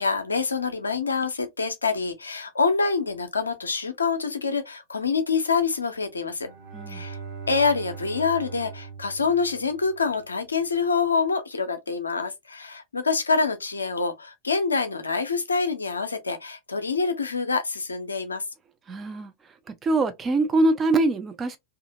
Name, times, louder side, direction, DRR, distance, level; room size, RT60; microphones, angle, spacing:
voice 1, 0.0-6.5 6.9-7.2 7.5-18.4, left 4 dB, 75° left, 0.6 m, -26 dB
Bowed string instrument, 6.2-10.3, right 5 dB, 40° right, 1.3 m, -40 dB
voice 2, 18.9-19.3 19.8-21.6, right 2 dB, 20° right, 0.6 m, -23 dB
2.7 x 2.4 x 2.7 m
figure-of-eight pair, 90°, 0 cm